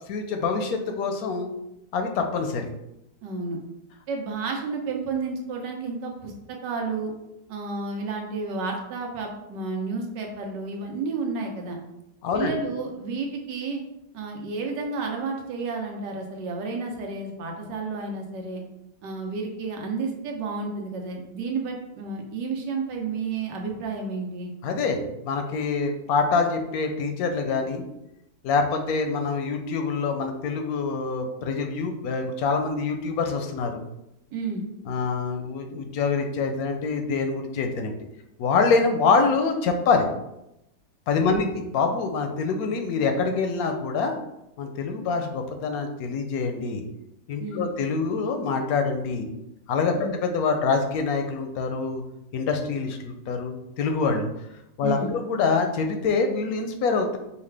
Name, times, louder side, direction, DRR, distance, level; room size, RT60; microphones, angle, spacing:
voice 1, 0.1-1.5 1.9-2.7 12.2-12.5 24.6-27.8 28.4-33.8 34.9-37.9 38.4-40.1 41.1-41.5 41.7-44.1 44.6-46.8 47.3-49.3 49.7-50.0 50.2-52.0 52.3-54.3 54.8-57.2, left 4 dB, 70° left, 5 dB, 0.9 m, -25 dB
voice 2, 3.2-3.6 4.1-7.1 7.5-11.8 12.3-13.8 14.1-18.6 19.0-24.5 34.3-34.6 41.2-41.5 47.4-47.7 49.9-50.2 54.8-55.1, right 4 dB, 90° right, 1 dB, 1.4 m, -31 dB
5.6 x 2.4 x 3.3 m, 0.87 s
omnidirectional pair, 1.8 m